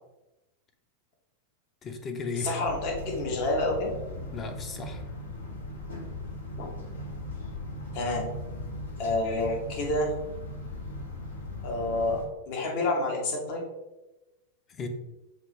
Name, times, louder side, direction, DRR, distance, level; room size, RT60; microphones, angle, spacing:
voice 1, 1.8-2.6 4.3-5.0 14.7-14.9, left 3 dB, 25° left, 5 dB, 0.6 m, -35 dB
voice 2, 2.4-3.9 6.6-6.7 7.9-8.3 9.0-10.1 11.6-13.6, left 2 dB, 45° left, 0 dB, 1.0 m, -28 dB
sound 1, 2.6-12.2, left 2 dB, 70° left, 0.8 m, -38 dB
5.8 x 2.7 x 3.1 m, 1.0 s
figure-of-eight pair, 90°, 0 cm